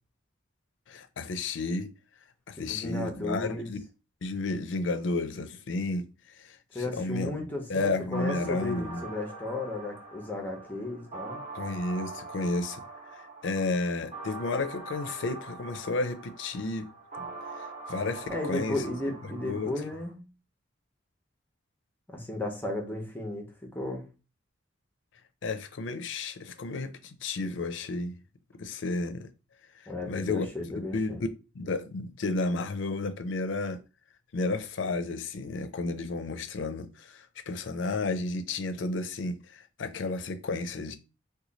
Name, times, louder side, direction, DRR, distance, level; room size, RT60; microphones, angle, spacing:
voice 1, 0.9-1.9 2.5-3.8 4.2-6.1 6.4-9.0 11.5-12.8 13.1-16.9 17.6-18.8 19.2-19.7 25.4-28.2 28.6-29.3 30.1-30.5 30.9-31.1 31.5-33.8 34.3-41.0, left 3 dB, 70° left, 0.5 m, -32 dB
voice 2, 2.6-3.7 6.7-11.4 18.3-20.2 22.1-24.1 29.9-31.2, left 2 dB, 10° left, 0.6 m, -34 dB
sound 1, 8.1-20.1, right 3 dB, 35° right, 1.0 m, -43 dB
3.0 x 2.2 x 3.9 m
head